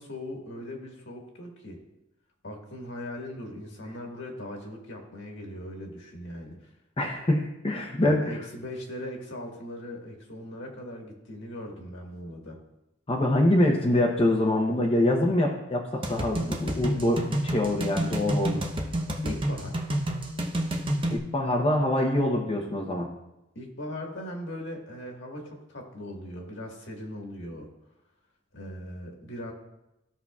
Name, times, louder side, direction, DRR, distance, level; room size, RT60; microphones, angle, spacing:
voice 1, 0.0-1.8 2.4-6.7 8.0-12.6 19.2-19.9 23.5-27.7 28.5-29.5, left 1 dB, 65° left, 0 dB, 1.7 m, -39 dB
voice 2, 7.0-8.4 13.1-18.6 21.1-23.1, left 1 dB, 30° left, -2 dB, 0.8 m, -25 dB
sound 1, 16.0-21.2, right 1 dB, 25° right, 0.8 m, -29 dB
15.5 x 5.6 x 2.4 m, 0.92 s
head